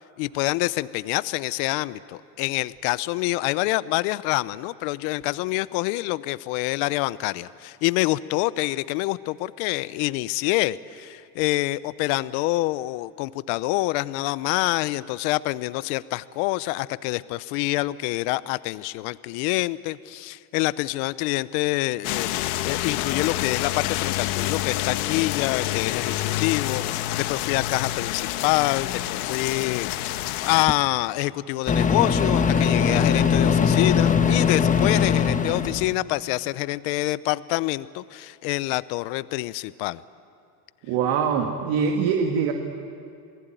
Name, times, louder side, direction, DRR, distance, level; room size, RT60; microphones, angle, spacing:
voice 1, 0.2-30.1 30.4-40.0, left 19 dB, 65° left, 17 dB, 0.8 m, -26 dB
sound 1, 22.0-30.7, left 14 dB, 85° left, 1.3 m, -28 dB
Microwave oven, 30.7-30.8 31.7-35.9, left 6 dB, 15° left, 1.3 m, -20 dB
voice 2, 40.8-42.5, right 6 dB, 65° right, 3 dB, 2.1 m, -23 dB
27.5 x 19.5 x 9.2 m, 2.5 s
supercardioid pair, 125°, 43 cm